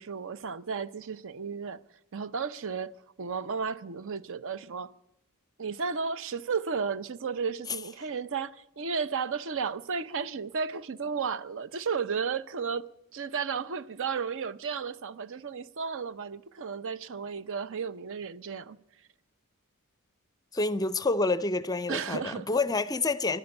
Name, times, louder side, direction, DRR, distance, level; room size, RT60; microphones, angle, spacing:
voice 1, 0.0-1.8 2.1-4.9 5.6-18.8 21.9-22.5, right 5 dB, 60° right, 0.6 m, -33 dB
voice 2, 20.5-23.4, left 3 dB, 15° left, 0.5 m, -28 dB
16.0 x 11.5 x 7.9 m
head